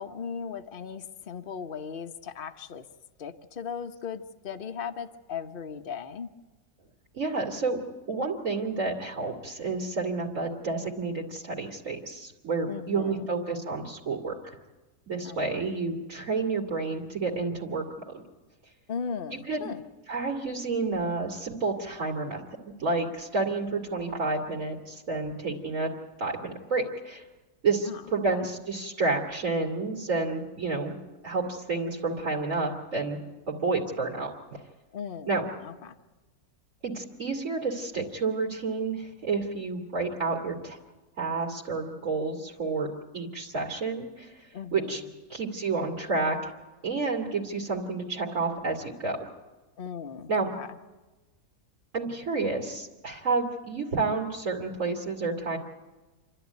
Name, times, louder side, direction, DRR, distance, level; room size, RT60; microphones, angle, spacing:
voice 1, 0.0-2.9 3.2-6.3 12.7-13.3 15.2-15.6 18.9-19.8 27.9-28.0 28.3-28.5 34.9-36.0 44.5-45.1 49.8-50.8, left 6 dB, 40° left, 6 dB, 1.0 m, -38 dB
voice 2, 7.1-7.8 8.1-14.6 15.1-18.2 19.5-19.7 20.1-25.9 26.2-27.2 27.6-30.9 31.2-33.2 33.5-34.3 35.3-35.4 36.8-40.8 41.2-42.9 43.1-44.5 44.7-45.0 45.3-46.5 46.8-49.2 50.3-50.5 51.9-55.6, right 3 dB, 50° right, -1 dB, 2.7 m, -30 dB
28.0 x 12.5 x 9.4 m, 1.2 s
omnidirectional pair, 1.8 m